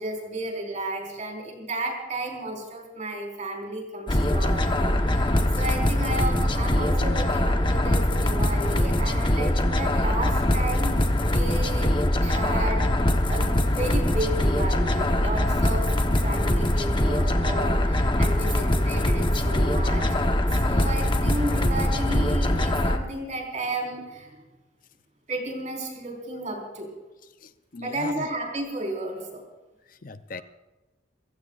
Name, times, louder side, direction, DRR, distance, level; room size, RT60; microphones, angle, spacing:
voice 1, 0.0-10.9 11.3-11.9 12.2-12.9 13.3-20.2 20.6-24.4 25.3-26.9 27.8-29.4, right 1 dB, 40° right, 0 dB, 4.5 m, -33 dB
sound 1, 4.1-23.0, left 1 dB, 25° left, 1.0 m, -23 dB
voice 2, 27.4-28.3 29.9-30.4, left 3 dB, 45° left, 11 dB, 0.6 m, -39 dB
29.0 x 16.0 x 2.5 m, 1.1 s
head